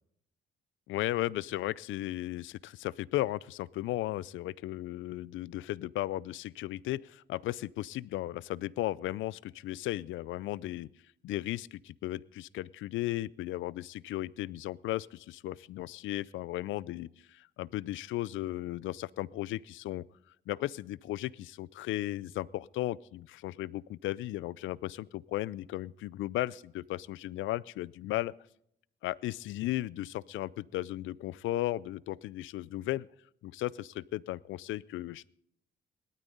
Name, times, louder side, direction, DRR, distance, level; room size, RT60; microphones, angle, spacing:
voice 1, 0.9-10.9 11.2-20.0 20.5-28.4 29.0-33.1 33.4-35.3, left 15 dB, 75° left, 23 dB, 0.4 m, -35 dB
18.0 x 12.5 x 4.0 m, 0.73 s
cardioid pair, 90°, 20 cm